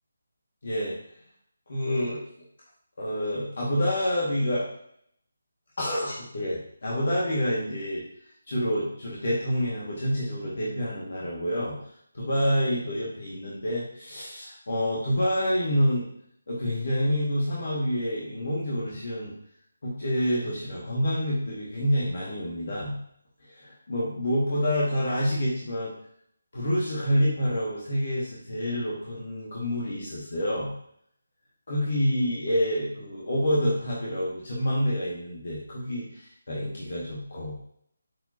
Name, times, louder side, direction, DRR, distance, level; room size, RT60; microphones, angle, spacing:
voice 1, 0.6-1.0 1.7-2.2 3.0-4.7 5.8-8.0 8.5-11.8 12.1-16.1 16.5-19.3 19.8-22.9 23.5-25.9 26.5-30.7 31.7-37.6, equal, 50° left, -5 dB, 1.9 m, -27 dB
8.6 x 4.9 x 2.8 m, 0.68 s
figure-of-eight pair, 155°, 0 cm